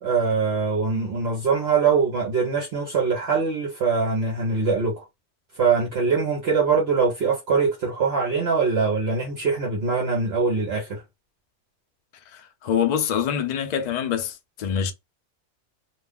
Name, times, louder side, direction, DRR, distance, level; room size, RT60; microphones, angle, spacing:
voice 1, 0.0-5.0 5.5-11.0, right 5 dB, 55° right, 0.9 m, -23 dB
voice 2, 12.3-14.9, left 8 dB, 90° left, 0.3 m, -25 dB
2.4 x 2.3 x 3.4 m
omnidirectional pair, 1.3 m